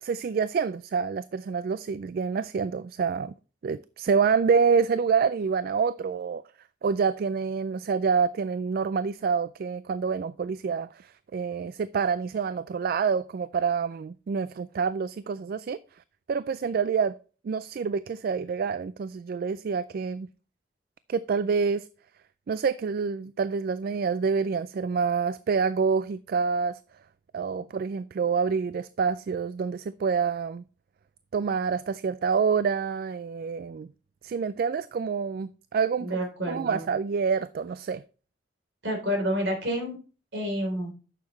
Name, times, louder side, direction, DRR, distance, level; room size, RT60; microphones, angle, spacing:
voice 1, 0.0-3.3 3.6-6.4 6.8-15.8 16.3-17.2 17.4-20.3 21.1-21.9 22.5-26.8 27.3-30.6 31.3-33.9 34.2-36.1 36.5-38.0, right 5 dB, 50° right, 0.3 m, -27 dB
voice 2, 36.0-36.8 38.8-40.0 40.3-40.9, equal, 65° right, 3.4 m, -29 dB
9.5 x 6.7 x 3.1 m
head